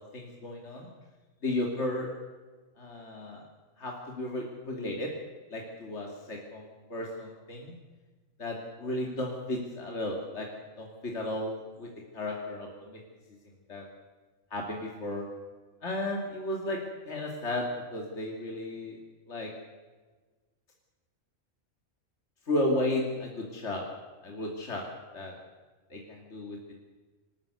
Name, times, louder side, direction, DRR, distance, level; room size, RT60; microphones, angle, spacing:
voice 1, 0.1-0.9 1.4-2.1 2.8-3.5 3.8-5.1 5.5-7.7 8.4-10.5 10.8-13.0 13.7-13.8 14.5-15.3 15.8-16.8 17.1-19.0 19.3-19.5 22.5-23.8 24.2-24.8 25.1-25.3 25.9-26.7, left 1 dB, 65° left, 0 dB, 2.9 m, -34 dB
26.0 x 13.5 x 8.1 m, 1.3 s
omnidirectional pair, 1.3 m